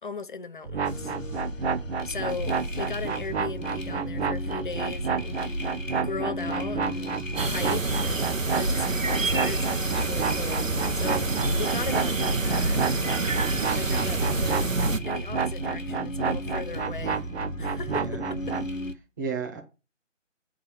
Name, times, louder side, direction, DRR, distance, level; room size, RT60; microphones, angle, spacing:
voice 1, 0.0-1.1 2.0-5.4 5.9-12.8 13.7-17.3 17.6-18.6, left 4 dB, 40° left, 0.6 m, -37 dB
sound 1, 0.6-18.7, right 5 dB, 60° right, 0.6 m, -31 dB
sound 2, 0.8-18.9, left 1 dB, 85° left, 1.3 m, -36 dB
sound 3, 7.4-15.0, right 3 dB, 90° right, 1.0 m, -27 dB
voice 2, 13.9-14.3 17.9-18.2 19.2-19.6, right 6 dB, 15° right, 0.8 m, -33 dB
8.7 x 3.7 x 6.8 m
figure-of-eight pair, 150°, 38 cm